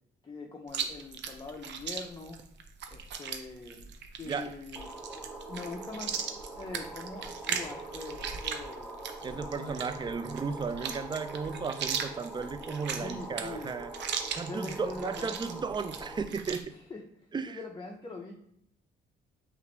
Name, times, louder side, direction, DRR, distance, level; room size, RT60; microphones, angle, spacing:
voice 1, 0.2-2.4 2.9-3.9 4.2-4.9 5.5-6.2 6.6-9.0 9.4-9.9 12.9-13.9 14.5-15.6 16.7-17.0 17.5-18.3, left 3 dB, 25° left, 0.6 m, -43 dB
Chewing mastication, 0.7-16.6, right 7 dB, 65° right, 0.6 m, -38 dB
sound 1, 4.8-16.2, right 2 dB, 5° right, 0.8 m, -44 dB
voice 2, 9.2-14.0 14.3-16.7 17.3-17.6, right 5 dB, 25° right, 0.3 m, -35 dB
5.7 x 2.5 x 3.2 m
cardioid pair, 90°, 20 cm